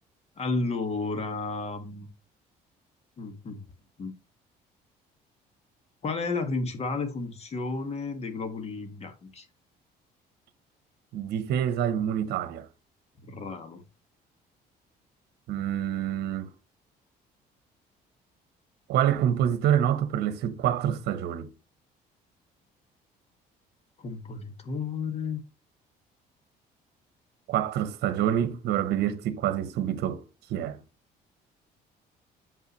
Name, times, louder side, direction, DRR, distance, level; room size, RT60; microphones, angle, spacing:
voice 1, 0.4-2.1 3.2-3.6 4.0-4.1 6.0-9.5 13.2-13.8 24.0-25.4, left 3 dB, 40° left, 1.8 m, -32 dB
voice 2, 11.1-12.7 15.5-16.5 18.9-21.5 27.5-30.2 30.5-30.8, right 10 dB, 75° right, 0.9 m, -27 dB
7.4 x 5.5 x 3.1 m
cardioid pair, 110°, 17 cm